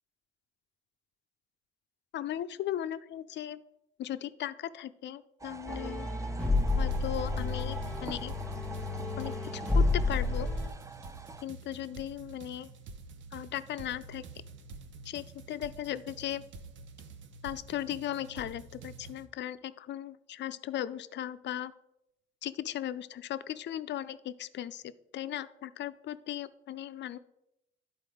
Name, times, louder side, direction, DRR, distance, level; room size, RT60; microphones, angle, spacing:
voice 1, 2.1-3.6 4.0-6.1 6.8-8.3 9.2-10.5 11.4-12.7 13.3-14.2 15.1-16.4 17.4-21.7 22.4-24.8 25.1-27.2, left 11 dB, 65° left, 14 dB, 0.5 m, -37 dB
sound 1, 5.4-11.4, right 4 dB, 15° right, 0.4 m, -45 dB
sound 2, 5.7-10.7, left 3 dB, 5° left, 1.3 m, -30 dB
sound 3, 6.5-19.3, right 4 dB, 70° right, 0.8 m, -49 dB
11.0 x 4.2 x 4.9 m, 0.84 s
cardioid pair, 90°, 20 cm